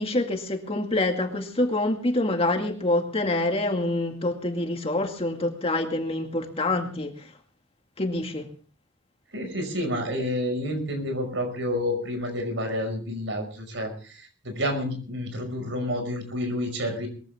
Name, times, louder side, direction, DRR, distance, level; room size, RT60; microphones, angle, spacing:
voice 1, 0.0-7.3 8.0-8.5, left 2 dB, 30° left, 2.1 m, -26 dB
voice 2, 9.3-17.1, left 1 dB, 70° right, 5.5 m, -29 dB
21.5 x 15.0 x 3.6 m
head